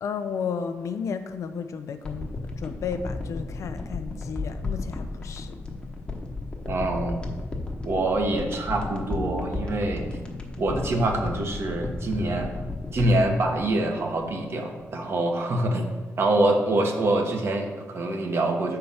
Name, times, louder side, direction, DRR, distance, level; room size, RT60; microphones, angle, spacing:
voice 1, 0.0-2.3 2.6-5.6, left 6 dB, 75° left, 9 dB, 0.5 m, -33 dB
sound 1, 2.0-14.5 14.8-14.9, left 3 dB, 20° left, 1.0 m, -34 dB
voice 2, 6.7-7.3 7.9-10.1 10.6-12.5 12.9-15.9 16.2-18.8, right 2 dB, 50° right, 3 dB, 1.1 m, -25 dB
7.7 x 4.5 x 5.5 m, 1.3 s
wide cardioid pair, 135°, 5 cm